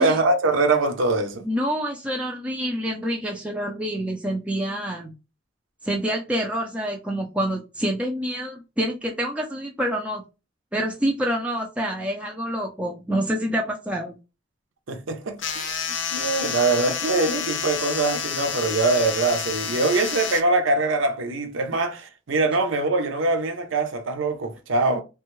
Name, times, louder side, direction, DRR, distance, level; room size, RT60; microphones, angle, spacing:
voice 1, 0.0-1.4 14.9-25.0, right 3 dB, 75° right, 0.6 m, -23 dB
voice 2, 1.4-5.1 5.8-10.2 10.7-14.2, equal, 5° right, 0.4 m, -27 dB
sound 1, 15.4-20.4, left 7 dB, 65° left, 0.5 m, -29 dB
3.3 x 2.3 x 3.0 m
head